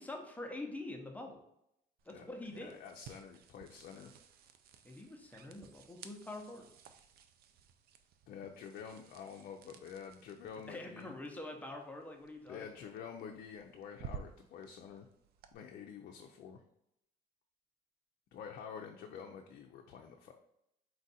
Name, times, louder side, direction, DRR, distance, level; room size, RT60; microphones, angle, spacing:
voice 1, 0.0-1.4 2.0-2.7 4.8-6.7 10.7-12.7, left 2 dB, 10° left, 1 dB, 0.8 m, -45 dB
sound 1, 2.0-15.5, right 7 dB, 65° right, 0.5 m, -55 dB
voice 2, 2.6-4.1 8.3-11.1 12.5-15.1 15.5-16.6 18.3-20.3, left 7 dB, 65° left, 2 dB, 0.5 m, -48 dB
4.5 x 2.5 x 4.1 m, 0.80 s
cardioid pair, 110°, 17 cm